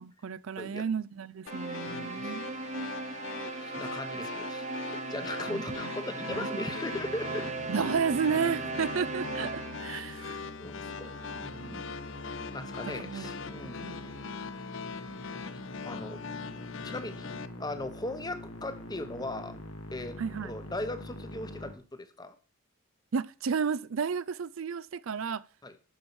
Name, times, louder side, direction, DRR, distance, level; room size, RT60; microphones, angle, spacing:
voice 1, 0.0-2.5 2.7-2.9 5.5-5.6 6.3-6.5 7.7-10.4 10.8-11.0 11.3-11.9 12.3-12.4 12.9-13.3 13.6-14.0 20.2-20.5 23.1-25.4, right 6 dB, 75° right, 0.5 m, -33 dB
sound 1, 1.5-17.5, left 6 dB, 65° left, 0.6 m, -42 dB
sound 2, 1.5-10.0, right 3 dB, 35° right, 1.0 m, -38 dB
voice 2, 1.9-2.3 2.8-2.9 3.6-7.5 10.2-11.9 12.4-14.0 14.2-14.5 15.4-16.2 16.8-17.3 17.6-19.6 19.9-22.4 25.6-25.8, left 1 dB, 20° left, 1.0 m, -39 dB
Musical instrument, 6.9-21.7, left 1 dB, 85° left, 2.4 m, -44 dB
12.0 x 5.4 x 6.2 m
head